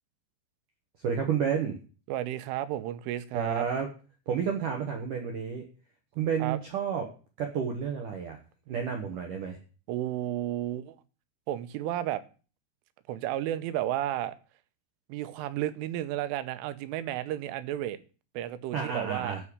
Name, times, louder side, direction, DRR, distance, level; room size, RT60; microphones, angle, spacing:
voice 1, 1.0-1.8 3.3-3.9 4.3-5.6 6.2-7.0 7.4-8.4 8.7-9.6 18.7-19.4, right 7 dB, 65° right, 2.1 m, -30 dB
voice 2, 2.1-3.6 6.4-6.6 9.9-11.0 11.5-12.2 13.1-14.4 15.1-18.0 18.3-19.4, right 13 dB, 85° right, 3.4 m, -32 dB
12.0 x 5.6 x 8.5 m
omnidirectional pair, 5.6 m